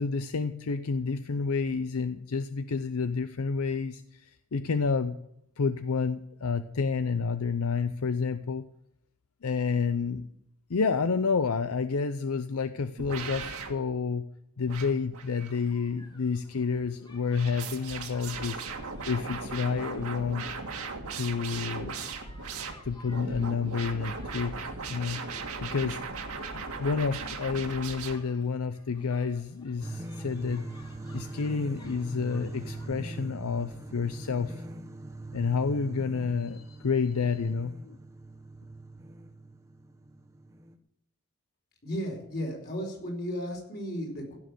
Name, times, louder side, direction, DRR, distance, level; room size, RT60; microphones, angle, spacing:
voice 1, 0.0-5.2 5.6-8.7 9.4-10.2 10.7-14.2 14.6-18.6 19.1-20.5 21.1-21.9 22.8-25.2 25.6-26.0 26.5-30.7 31.1-34.6 35.3-38.0, left 5 dB, 75° left, 11 dB, 0.6 m, -29 dB
sound 1, 13.0-13.7 14.7-15.7 17.3-28.2, right 4 dB, 80° right, 2.0 m, -38 dB
sound 2, 15.3-32.9, left 2 dB, 20° left, 2.0 m, -57 dB
sound 3, 29.8-40.8, right 2 dB, 15° right, 1.1 m, -42 dB
voice 2, 41.8-44.4, equal, 45° left, 0 dB, 4.9 m, -34 dB
16.0 x 6.7 x 9.2 m, 0.79 s
head